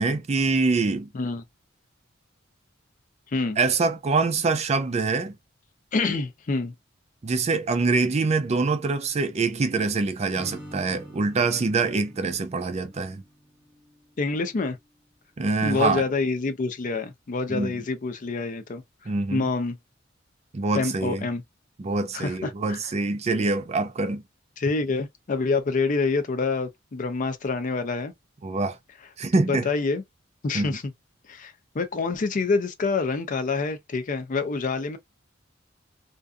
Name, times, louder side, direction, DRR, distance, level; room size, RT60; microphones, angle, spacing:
voice 1, 0.0-1.1 3.6-5.4 7.2-13.2 15.4-16.0 17.5-17.7 19.1-19.4 20.5-21.3 21.8-24.2 28.4-28.8 29.2-29.7 30.5-30.7, right 3 dB, 35° right, 0.4 m, -25 dB
voice 2, 5.9-6.7 14.2-14.8 15.6-19.8 20.7-21.4 22.1-22.8 24.6-28.1 29.5-30.0 30.4-30.9 31.3-35.0, left 4 dB, 40° left, 0.4 m, -27 dB
Acoustic guitar / Strum, 10.3-14.2, equal, 25° left, 1.3 m, -46 dB
2.5 x 2.4 x 2.2 m
head